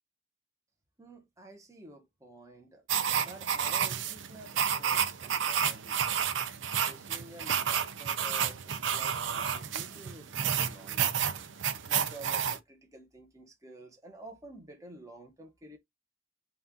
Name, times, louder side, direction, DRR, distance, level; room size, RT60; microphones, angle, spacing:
voice 1, 1.0-2.8 3.2-6.2 6.9-11.1 11.9-15.8, right 1 dB, 15° right, 1.0 m, -51 dB
sound 1, 2.9-12.6, right 8 dB, 75° right, 0.6 m, -30 dB
4.2 x 2.5 x 3.6 m
head